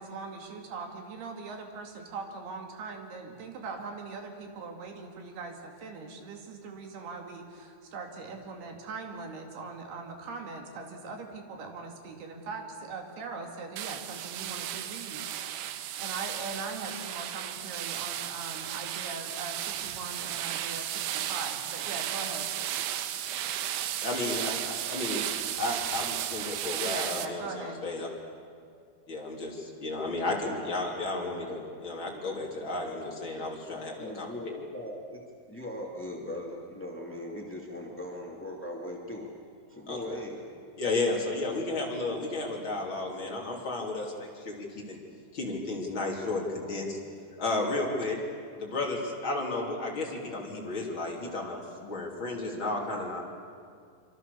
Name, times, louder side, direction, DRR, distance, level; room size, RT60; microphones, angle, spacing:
voice 1, 0.0-15.6 16.0-22.5 26.8-27.8, right 4 dB, 60° right, 3 dB, 4.1 m, -41 dB
sound 1, 13.8-27.3, right 11 dB, 85° right, 3.5 m, -34 dB
voice 2, 24.0-25.2 25.6-28.1 29.1-34.3 39.9-40.0 40.8-45.0 45.3-47.0 47.4-48.2 48.6-53.2, left 2 dB, 30° left, -1 dB, 3.4 m, -33 dB
voice 3, 33.7-35.2 35.5-39.3 39.7-40.6, left 1 dB, 15° left, -1 dB, 0.5 m, -39 dB
26.0 x 25.5 x 6.9 m, 2.2 s
omnidirectional pair, 5.5 m